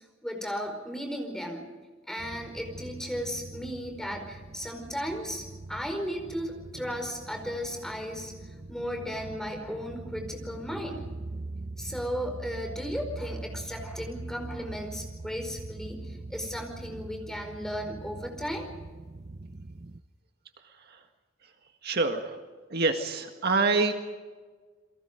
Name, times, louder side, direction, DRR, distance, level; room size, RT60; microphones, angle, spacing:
voice 1, 0.0-1.7 2.1-8.3 8.7-11.1 11.8-18.7, equal, 5° left, 4 dB, 4.8 m, -35 dB
sound 1, 2.2-20.0, right 2 dB, 35° right, 0.7 m, -42 dB
voice 2, 20.6-21.0 21.8-22.4 22.7-23.9, right 3 dB, 55° right, 5 dB, 1.9 m, -26 dB
29.5 x 23.0 x 5.2 m, 1.4 s
head